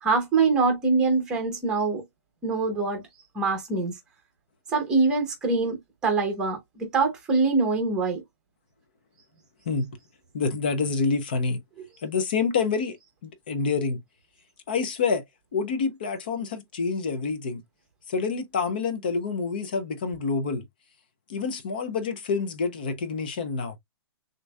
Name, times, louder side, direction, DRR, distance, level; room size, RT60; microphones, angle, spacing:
voice 1, 0.0-2.0 2.4-3.0 3.3-4.0 4.7-8.2, right 4 dB, 5° right, 0.8 m, -24 dB
voice 2, 10.3-11.6 12.0-13.0 13.2-14.0 14.7-15.2 15.5-17.6 18.1-20.6 21.3-23.8, left 4 dB, 20° left, 0.4 m, -27 dB
6.4 x 2.6 x 2.3 m
hypercardioid pair, 180°, 15 cm